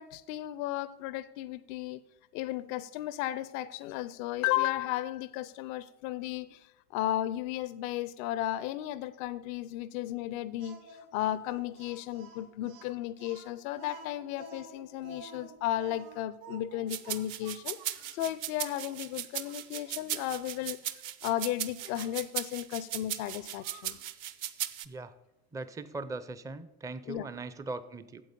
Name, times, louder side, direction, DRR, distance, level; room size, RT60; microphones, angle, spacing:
voice 1, 0.0-2.0 2.3-20.9 21.2-24.0 27.1-27.3, left 13 dB, 65° left, 16 dB, 0.6 m, -34 dB
Speech, 10.6-18.2 18.8-18.9 19.4-20.4 21.8-22.1 23.3-24.0, right 3 dB, 70° right, 3.6 m, -51 dB
sound 1, 16.9-24.9, right 11 dB, 45° right, 0.7 m, -37 dB
voice 2, 25.5-28.2, right 3 dB, 10° right, 14 dB, 0.5 m, -40 dB
8.6 x 7.8 x 5.2 m, 0.97 s
hypercardioid pair, 85°, 45 cm